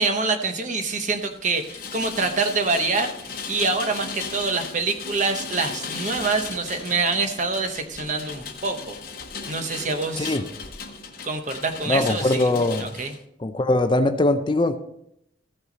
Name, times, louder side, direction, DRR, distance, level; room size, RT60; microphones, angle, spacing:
voice 1, 0.0-9.0 9.5-10.4 11.2-12.5 12.8-13.1, right 3 dB, 40° right, 0.9 m, -26 dB
Rain, 0.8-13.2, left 5 dB, 50° left, 1.0 m, -36 dB
voice 2, 10.2-10.5 11.9-12.9 13.4-14.8, left 2 dB, 25° left, 0.4 m, -21 dB
14.5 x 5.6 x 4.0 m
head